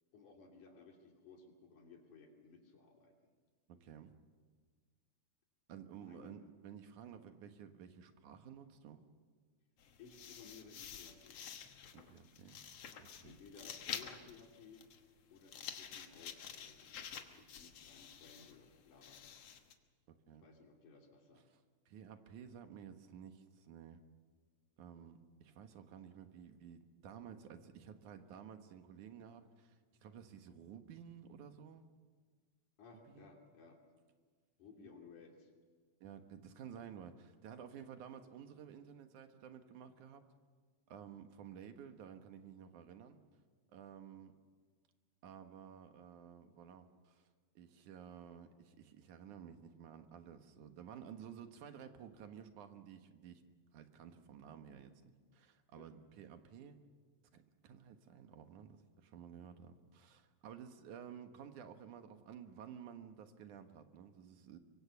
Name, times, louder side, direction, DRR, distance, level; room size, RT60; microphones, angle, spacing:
voice 1, 0.1-3.1 6.0-6.4 10.0-11.4 13.2-14.8 15.3-16.9 17.3-19.4 20.4-21.5 32.8-33.8 34.6-35.5 55.8-55.9, left 5 dB, 85° left, 2 dB, 4.4 m, -59 dB
voice 2, 3.7-4.1 5.7-9.0 11.9-12.6 13.0-13.4 20.1-20.5 21.9-24.0 24.8-31.9 33.1-33.3 34.8-34.9 36.0-40.3 40.9-43.2 43.7-44.3 45.2-47.3 47.6-53.4 53.7-56.8 57.3-64.6, right 8 dB, 80° right, 7 dB, 2.9 m, -53 dB
sound 1, 9.8-19.7, left 8 dB, 60° left, 2.3 m, -49 dB
24.0 x 24.0 x 7.0 m, 1.5 s
omnidirectional pair, 3.4 m